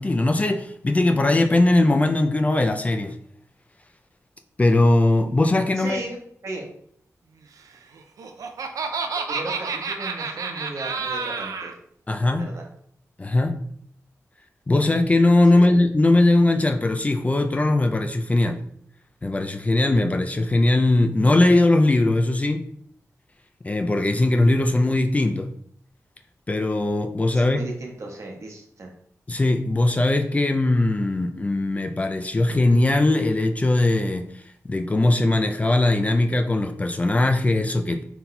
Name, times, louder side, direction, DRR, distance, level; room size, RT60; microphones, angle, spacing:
voice 1, 0.0-3.2 4.6-6.0 12.1-12.5 13.2-13.6 14.7-18.6 19.2-22.7 23.6-25.5 26.5-27.6 29.3-34.2 34.6-38.0, left 2 dB, 25° left, 5 dB, 0.3 m, -20 dB
voice 2, 5.8-6.7 9.3-11.7 12.3-12.7 15.5-15.7 27.3-28.9, right 2 dB, 60° right, 1 dB, 0.9 m, -36 dB
Laughter, 8.0-11.7, right 4 dB, 85° right, 0.4 m, -29 dB
4.1 x 4.0 x 2.2 m, 0.64 s
wide cardioid pair, 90°, 6 cm